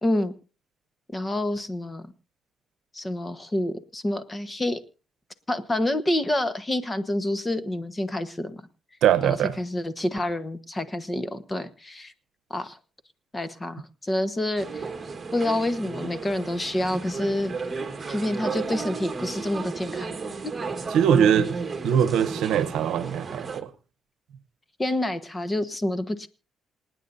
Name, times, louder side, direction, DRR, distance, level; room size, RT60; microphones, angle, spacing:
voice 1, 0.0-0.3 1.1-2.0 2.9-4.8 5.5-8.6 9.2-12.1 12.5-12.8 13.3-14.8 15.3-17.5 18.1-20.2 24.8-26.3, left 1 dB, 20° left, 1.2 m, -28 dB
voice 2, 9.0-9.6 20.9-23.7, right 9 dB, 80° right, 0.8 m, -22 dB
sound 1, 14.6-23.6, right 4 dB, 30° right, 1.5 m, -33 dB
27.0 x 9.3 x 2.7 m
cardioid pair, 90°, 0 cm